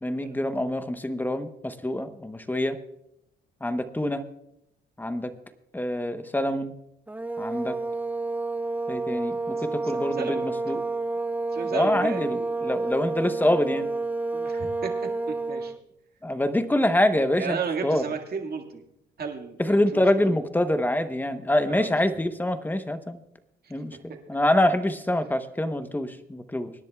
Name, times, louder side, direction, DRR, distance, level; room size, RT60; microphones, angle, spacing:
voice 1, 0.0-2.8 3.6-4.2 5.0-5.3 5.7-6.7 7.4-7.8 8.9-10.8 11.7-13.9 16.2-18.0 19.6-23.2 23.7-24.0 24.3-26.7, left 1 dB, 10° left, 10 dB, 0.9 m, -25 dB
sound 1, 7.1-15.8, right 3 dB, 10° right, 0.5 m, -29 dB
voice 2, 9.6-10.5 11.5-12.5 14.3-15.7 17.4-18.8 19.2-20.3 21.7-22.0, right 6 dB, 50° right, 2 dB, 2.0 m, -34 dB
25.0 x 10.5 x 2.3 m, 0.83 s
cardioid pair, 90°, 20 cm